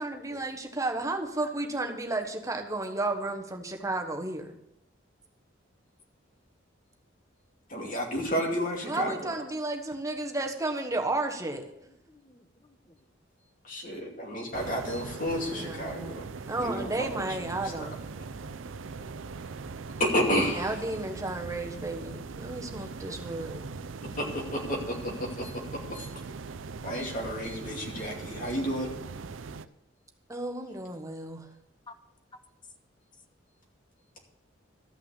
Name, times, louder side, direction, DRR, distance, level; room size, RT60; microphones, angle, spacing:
voice 1, 0.0-4.5 8.9-11.6 15.5-16.2 16.5-17.9 20.5-23.6 30.3-31.5, right 2 dB, 15° right, 3 dB, 1.2 m, -33 dB
voice 2, 7.7-9.3 13.6-16.2 16.6-17.9 20.0-20.8 24.0-26.1 26.8-28.9, equal, 45° left, 0 dB, 2.6 m, -31 dB
voice 3, 12.1-12.4 18.1-19.3 22.4-22.5 24.0-24.2 31.9-32.0, left 3 dB, 25° left, 8 dB, 0.9 m, -54 dB
sound 1, 14.5-29.7, right 4 dB, 80° right, 0.5 m, -40 dB
13.5 x 5.9 x 8.3 m, 0.85 s
head